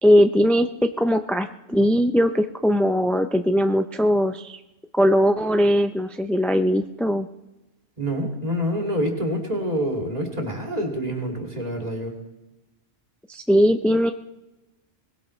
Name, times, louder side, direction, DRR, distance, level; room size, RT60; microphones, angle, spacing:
voice 1, 0.0-4.6 4.9-7.3 13.3-14.1, equal, ahead, 6 dB, 0.3 m, -20 dB
voice 2, 8.0-12.1, equal, 30° right, 0 dB, 2.7 m, -26 dB
22.0 x 20.0 x 3.2 m, 1.0 s
omnidirectional pair, 1.3 m